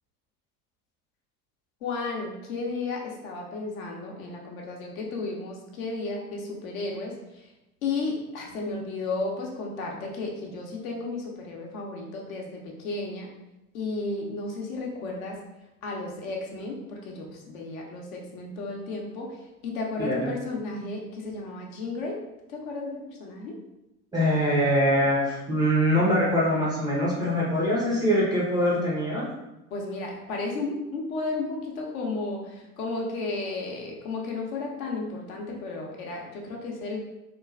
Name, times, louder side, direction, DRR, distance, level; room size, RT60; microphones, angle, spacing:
voice 1, 1.8-7.5 7.8-13.3 13.7-15.4 15.8-22.2 22.5-23.6 29.7-37.0, left 3 dB, 60° left, -1 dB, 0.7 m, -33 dB
voice 2, 20.0-20.3 24.1-29.3, equal, 10° right, -6 dB, 0.4 m, -23 dB
3.0 x 2.2 x 2.3 m, 0.94 s
figure-of-eight pair, 70°, 46 cm